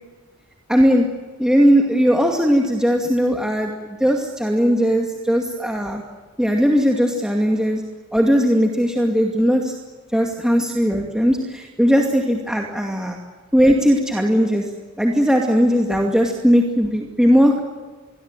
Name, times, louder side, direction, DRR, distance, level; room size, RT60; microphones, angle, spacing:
voice 1, 0.7-1.1 1.4-3.7 4.0-6.0 6.4-7.8 8.1-9.7 10.1-13.2 13.5-14.6 15.0-17.6, equal, 5° right, 1 dB, 2.4 m, -18 dB
28.5 x 22.5 x 9.1 m, 1.3 s
head